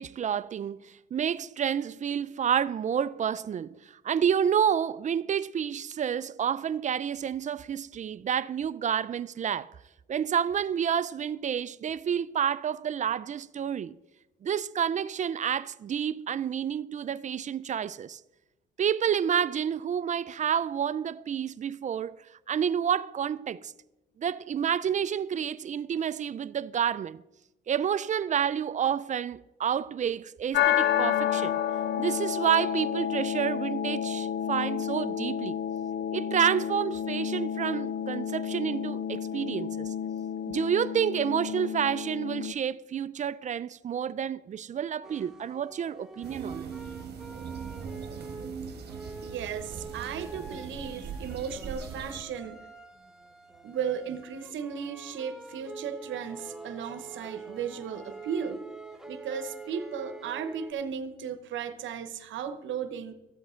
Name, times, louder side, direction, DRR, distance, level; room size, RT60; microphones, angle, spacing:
voice 1, 0.0-9.7 10.1-14.0 14.4-18.2 18.8-22.2 22.5-23.7 24.2-27.2 27.7-31.5 32.0-35.6 36.1-39.9 40.5-46.7, right 8 dB, 40° right, 0.4 m, -29 dB
sound 1, 30.5-42.5, left 9 dB, 60° left, 0.5 m, -30 dB
sound 2, 45.0-60.7, right 3 dB, ahead, 1.0 m, -46 dB
sound 3, 46.2-52.2, right 6 dB, 55° right, 1.2 m, -40 dB
voice 2, 49.2-52.7 53.6-58.6 59.1-63.1, right 7 dB, 75° right, 0.9 m, -35 dB
13.0 x 8.0 x 4.3 m
cardioid pair, 90°, 20 cm